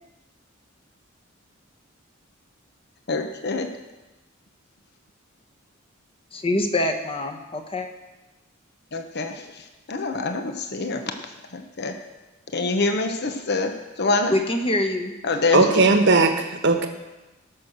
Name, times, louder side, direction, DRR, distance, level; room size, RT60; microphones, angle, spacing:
voice 1, 3.1-3.7 8.9-11.0 11.5-12.0 12.5-14.3 15.2-15.8, left 3 dB, 55° left, 6 dB, 1.0 m, -26 dB
voice 2, 6.3-7.9 14.3-15.1, left 1 dB, 25° left, 3 dB, 1.2 m, -24 dB
voice 3, 15.5-16.9, right 3 dB, 60° right, 5 dB, 1.3 m, -18 dB
17.5 x 6.3 x 6.7 m, 1.1 s
head